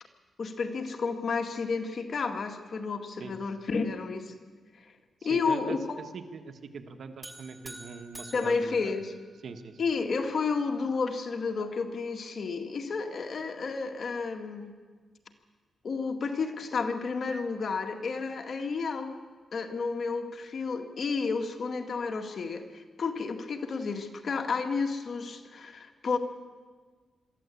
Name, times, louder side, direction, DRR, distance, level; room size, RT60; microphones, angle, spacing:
voice 1, 0.4-4.3 5.2-6.0 8.3-9.1 9.8-14.7 15.8-19.2 19.5-26.2, left 4 dB, 55° left, 5 dB, 2.0 m, -31 dB
voice 2, 5.2-8.9 9.4-9.8, right 5 dB, 65° right, 7 dB, 1.6 m, -42 dB
sound 1, 7.2-9.7, right 1 dB, 5° right, 2.3 m, -48 dB
23.0 x 14.0 x 8.6 m, 1.5 s
cardioid pair, 95°, 0 cm